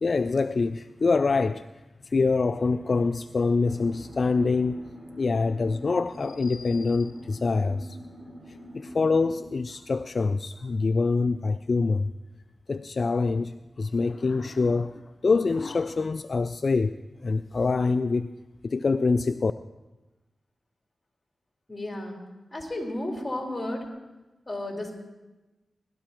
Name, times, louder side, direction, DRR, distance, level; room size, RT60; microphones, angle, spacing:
voice 1, 0.0-1.7 2.0-4.8 5.2-8.0 8.5-12.1 12.7-18.3 18.6-19.5, left 4 dB, 60° left, 11 dB, 0.3 m, -25 dB
sound 1, 3.6-9.4, equal, 15° right, 5.0 m, -44 dB
voice 2, 21.7-22.2 22.5-23.9 24.5-24.9, left 1 dB, 25° left, -1 dB, 4.0 m, -32 dB
18.5 x 12.5 x 3.0 m, 1.1 s
cardioid pair, 45°, 0 cm